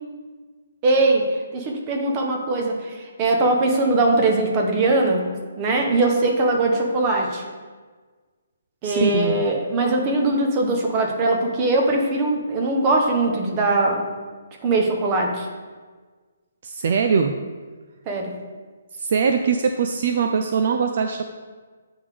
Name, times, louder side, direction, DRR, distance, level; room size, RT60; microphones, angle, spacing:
voice 1, 0.8-5.3 5.6-7.4 8.8-14.0 14.6-15.5 18.1-18.3, right 2 dB, 20° right, 1 dB, 0.9 m, -21 dB
voice 2, 8.8-9.5 16.6-17.3 19.0-21.3, right 6 dB, 45° right, 5 dB, 0.4 m, -22 dB
8.8 x 3.5 x 4.9 m, 1.4 s
hypercardioid pair, 170°, 0 cm